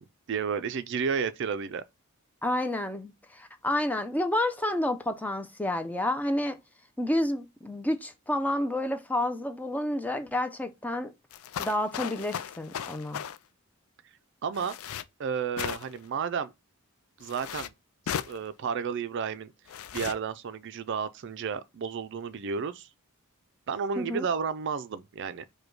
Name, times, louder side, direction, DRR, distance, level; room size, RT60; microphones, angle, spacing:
voice 1, 0.0-1.8 14.4-14.8 15.2-16.5 17.2-17.7 18.1-19.5 19.9-22.9 23.7-25.4, right 6 dB, 55° right, 0.4 m, -32 dB
voice 2, 2.4-6.6 7.0-11.1 11.6-13.2 24.0-24.2, left 1 dB, 5° left, 0.5 m, -30 dB
sound 1, 11.3-13.4 14.5-15.0 15.6-16.1 17.2-17.7 18.1-18.4 19.7-20.2, left 9 dB, 70° left, 0.4 m, -36 dB
4.9 x 2.2 x 4.5 m
head